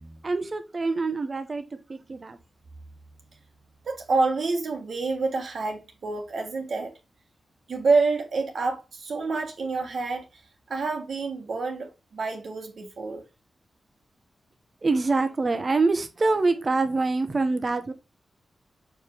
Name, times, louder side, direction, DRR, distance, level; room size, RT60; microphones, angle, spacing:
voice 1, 0.2-1.6 1.9-2.4 14.8-17.9, right 3 dB, 30° right, 1.0 m, -25 dB
voice 2, 3.8-6.9 7.7-10.2 10.7-13.2, right 3 dB, 60° right, 1.4 m, -27 dB
6.4 x 4.9 x 3.6 m
wide cardioid pair, 170°, 0 cm